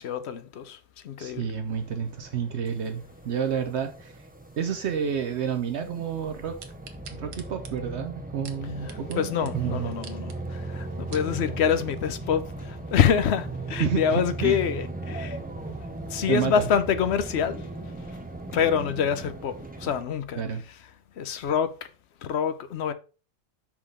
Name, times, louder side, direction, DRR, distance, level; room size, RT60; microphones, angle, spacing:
voice 1, 0.0-1.5 8.8-15.4 16.1-18.2 18.5-20.8 21.1-21.9 22.2-22.9, left 7 dB, 65° left, 0.9 m, -26 dB
voice 2, 1.2-4.3 4.6-6.6 7.1-9.9 13.8-14.6 16.3-16.6 20.4-20.6, right 7 dB, 65° right, 0.9 m, -30 dB
sound 1, 1.7-20.0, right 2 dB, 15° right, 0.4 m, -38 dB
sound 2, 6.6-9.2 9.5-9.6 9.9-10.4 10.8-11.3 11.9-12.0, right 7 dB, 85° right, 1.3 m, -45 dB
sound 3, 9.8-16.4, left 1 dB, 85° left, 2.5 m, -52 dB
5.9 x 4.0 x 4.9 m
omnidirectional pair, 1.3 m